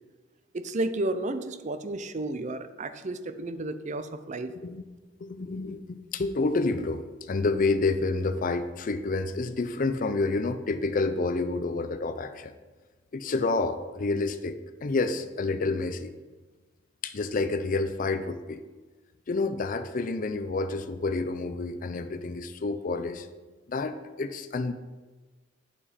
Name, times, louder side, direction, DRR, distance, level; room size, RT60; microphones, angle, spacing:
voice 1, 0.5-4.5, right 2 dB, 40° right, 11 dB, 0.5 m, -32 dB
voice 2, 5.2-12.5 13.1-16.1 17.0-18.6 19.3-23.3 23.7-24.7, left 3 dB, 45° left, 10 dB, 0.5 m, -29 dB
8.6 x 7.0 x 4.2 m, 1.3 s
head